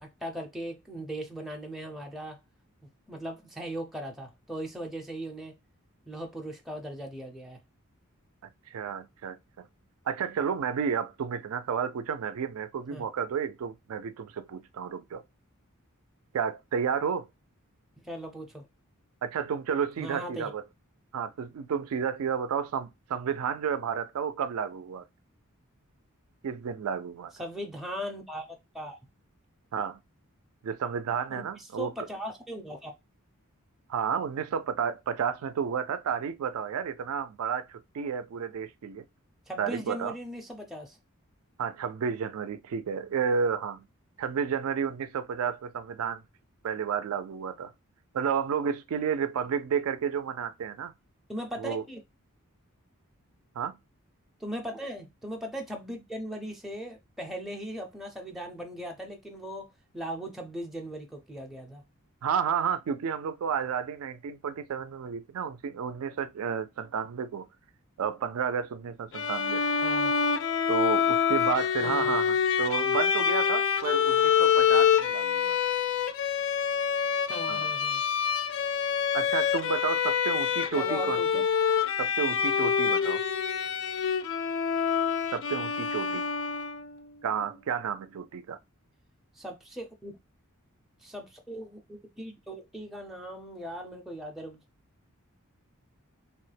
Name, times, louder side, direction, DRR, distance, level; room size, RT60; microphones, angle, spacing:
voice 1, 0.0-2.4 2.8-5.5 6.1-7.6 12.9-13.0 18.0-18.7 20.0-20.5 27.4-28.4 28.7-29.0 31.3-32.9 39.5-41.0 51.3-52.0 54.4-61.8 69.8-70.1 71.8-72.1 77.3-78.0 80.7-81.4 89.4-90.1 91.0-94.6, equal, ahead, 0.4 m, -39 dB
voice 2, 8.7-9.7 10.1-15.2 16.3-17.3 19.2-20.6 21.1-25.0 26.4-27.3 29.7-30.0 30.6-32.1 33.9-39.0 39.6-40.2 41.6-43.8 44.2-46.2 46.6-47.7 48.1-50.9 51.6-51.8 53.6-53.8 62.2-67.5 68.0-69.7 70.7-75.6 77.5-77.7 79.1-81.5 82.0-83.2 85.3-86.3 87.2-88.6, right 7 dB, 75° right, 0.4 m, -31 dB
Bowed string instrument, 69.1-87.0, left 7 dB, 60° left, 0.3 m, -26 dB
3.0 x 2.1 x 3.2 m
head